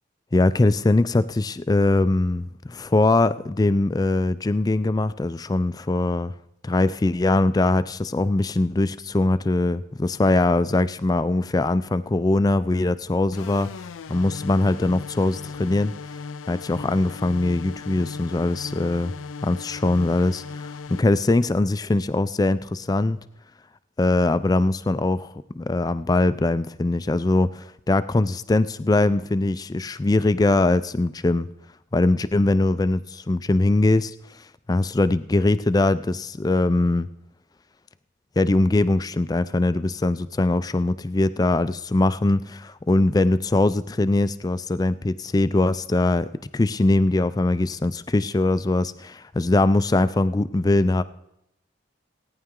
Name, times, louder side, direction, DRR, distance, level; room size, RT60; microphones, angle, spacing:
voice 1, 0.3-6.3 6.6-13.7 14.1-15.9 16.5-19.1 19.4-23.2 24.0-31.5 31.9-37.1 38.4-46.3 46.5-51.0, left 2 dB, 20° left, 14 dB, 0.3 m, -22 dB
sound 1, 13.3-21.0, left 5 dB, 90° left, 0.5 m, -37 dB
17.5 x 9.7 x 3.7 m, 0.84 s
head